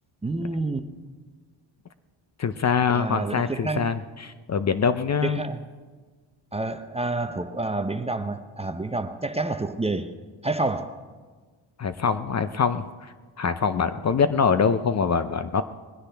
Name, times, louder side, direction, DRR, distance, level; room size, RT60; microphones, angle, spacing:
voice 1, 0.2-0.9 2.9-3.9 5.2-5.6 6.5-10.2 10.4-11.0, right 2 dB, 15° right, 8 dB, 0.6 m, -28 dB
voice 2, 2.4-5.4 11.8-12.8 13.4-15.6, left 6 dB, 35° left, 11 dB, 0.6 m, -24 dB
21.0 x 16.0 x 3.4 m, 1.4 s
cardioid pair, 115°, 49 cm